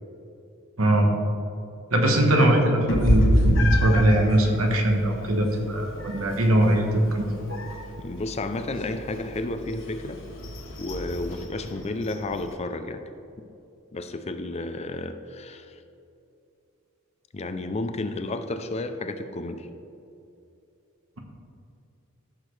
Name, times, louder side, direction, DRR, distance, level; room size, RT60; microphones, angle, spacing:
voice 1, 0.8-1.1 1.9-7.6, right 1 dB, 75° right, 2 dB, 1.4 m, -21 dB
Meow, 2.9-12.5, equal, 65° left, 1.3 m, -29 dB
voice 2, 8.0-10.2 10.8-13.0 13.4-13.5 13.9-15.8 17.3-19.7, left 2 dB, 30° left, 8 dB, 0.5 m, -32 dB
14.0 x 6.5 x 3.3 m, 2.7 s
head